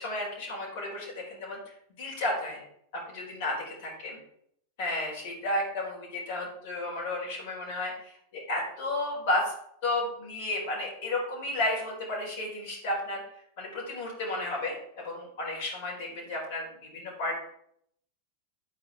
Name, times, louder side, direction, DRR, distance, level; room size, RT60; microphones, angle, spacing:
voice 1, 0.0-1.6 2.0-2.6 3.1-4.1 4.8-9.5 9.8-13.2 13.6-16.7 16.9-17.4, left 2 dB, 50° left, -3 dB, 4.5 m, -32 dB
10.5 x 8.6 x 3.5 m, 0.71 s
figure-of-eight pair, 90°, 0 cm